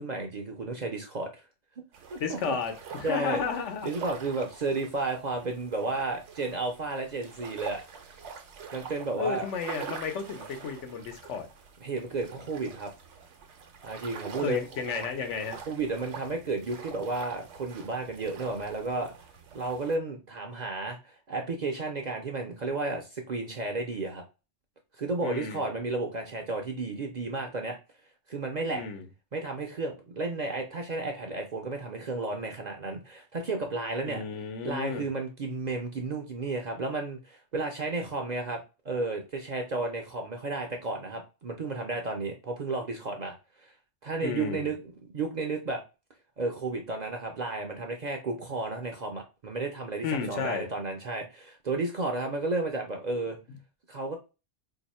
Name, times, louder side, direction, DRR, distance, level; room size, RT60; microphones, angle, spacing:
voice 1, 0.0-1.4 2.1-2.6 3.0-3.4 3.8-7.8 8.7-9.5 11.8-12.9 13.8-14.6 15.7-19.1 19.5-24.2 25.0-27.8 28.3-28.8 29.3-34.2 34.6-38.6 38.8-43.4 43.6-43.7 44.0-44.8 45.1-45.8 46.4-53.4 53.9-54.2, right 3 dB, 50° right, 0.5 m, -32 dB
sound 1, 1.9-20.0, right 6 dB, 75° right, 1.0 m, -45 dB
voice 2, 2.2-3.9 9.2-11.5 14.4-15.6 25.2-25.7 28.7-29.1 34.0-35.0 44.2-44.7 50.0-50.7, left 6 dB, 80° left, 1.1 m, -33 dB
2.8 x 2.6 x 4.1 m
omnidirectional pair, 1.2 m